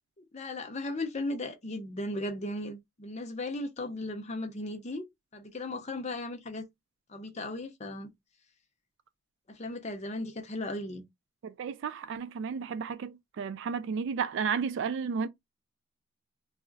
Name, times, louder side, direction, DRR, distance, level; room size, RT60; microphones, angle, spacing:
voice 1, 0.2-5.0 5.3-6.7 7.1-8.1 9.5-11.0, left 2 dB, 35° left, 0.6 m, -36 dB
voice 2, 11.4-15.3, right 6 dB, 65° right, 0.3 m, -33 dB
2.4 x 2.0 x 3.7 m
head